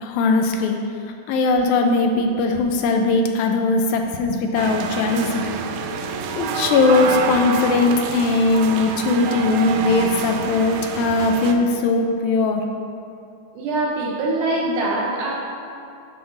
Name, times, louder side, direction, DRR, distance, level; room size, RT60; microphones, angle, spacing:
voice 1, 0.0-0.8 1.3-5.5 6.4-12.6, left 3 dB, 80° left, 4 dB, 2.4 m, -19 dB
sound 1, 4.6-11.5, right 5 dB, 85° right, 1.8 m, -27 dB
voice 2, 13.5-15.3, right 2 dB, 70° right, -4 dB, 2.1 m, -23 dB
7.5 x 4.1 x 5.7 m, 2.7 s
omnidirectional pair, 4.2 m